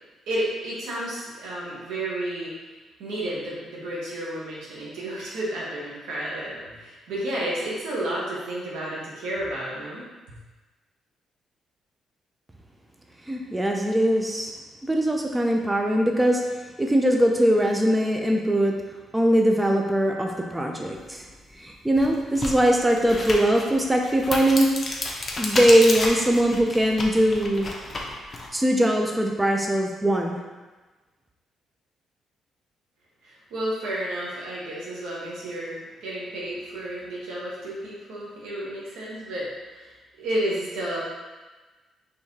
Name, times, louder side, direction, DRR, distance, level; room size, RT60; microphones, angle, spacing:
voice 1, 0.3-2.5 3.0-10.0 33.2-41.0, right 1 dB, 90° right, -6 dB, 1.2 m, -31 dB
voice 2, 13.3-14.5 14.8-16.4 16.8-18.7 19.1-21.2 21.6-24.7 25.4-27.7 28.5-30.4, equal, 10° right, 2 dB, 0.5 m, -21 dB
sound 1, 21.2-21.3 21.9-28.5, left 2 dB, 35° left, 0.7 m, -31 dB
4.6 x 3.3 x 2.8 m, 1.2 s
cardioid pair, 85°, 0 cm